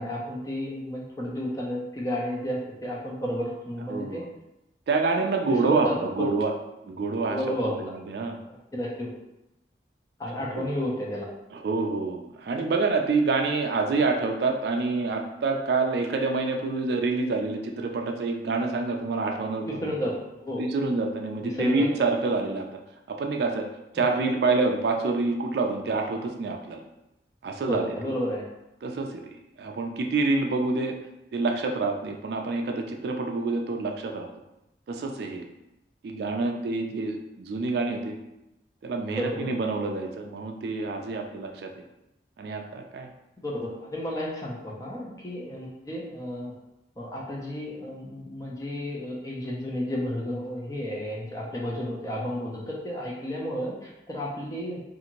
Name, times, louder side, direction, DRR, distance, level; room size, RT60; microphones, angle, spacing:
voice 1, 0.0-4.3 5.6-5.9 7.3-7.8 8.7-9.1 10.2-11.3 19.6-20.6 21.4-21.9 27.7-28.4 39.1-39.5 43.4-46.5 47.0-54.8, equal, 20° left, -3 dB, 0.5 m, -32 dB
voice 2, 3.9-4.3 4.9-6.5 6.8-8.4 10.6-10.7 11.5-19.7 20.6-22.7 23.1-23.7 23.9-26.8 27.4-27.9 28.8-31.0 31.3-34.3 34.9-35.4 36.0-38.2 38.8-41.7 42.4-43.1, right 3 dB, 60° right, 3 dB, 0.3 m, -27 dB
2.7 x 2.5 x 2.9 m, 0.92 s
head